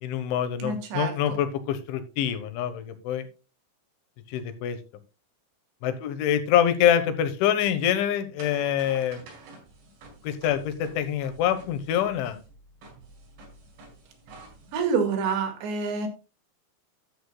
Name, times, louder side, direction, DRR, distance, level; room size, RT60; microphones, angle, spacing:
voice 1, 0.0-3.3 4.3-4.8 5.8-9.3 10.2-12.4, left 10 dB, 80° left, 10 dB, 3.5 m, -25 dB
voice 2, 0.6-1.4 14.7-16.1, right 5 dB, 70° right, 6 dB, 4.0 m, -27 dB
sound 1, 7.5-14.9, right 3 dB, 90° right, 6.8 m, -50 dB
13.0 x 10.0 x 2.2 m, 0.30 s
omnidirectional pair, 5.4 m